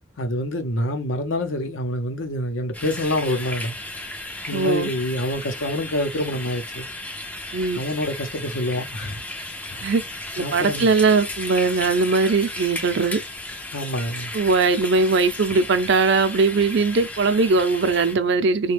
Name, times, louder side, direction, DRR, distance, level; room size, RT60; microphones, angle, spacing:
voice 1, 0.2-3.7 4.5-6.9 7.7-9.5 10.4-10.9 13.7-14.3, left 1 dB, 85° left, 0.7 m, -26 dB
sound 1, 2.7-18.1, left 1 dB, 10° left, 0.3 m, -34 dB
voice 2, 4.5-4.9 7.5-7.8 9.8-10.0 10.4-13.2 14.3-18.7, right 4 dB, 65° right, 0.5 m, -20 dB
3.3 x 2.2 x 3.3 m
head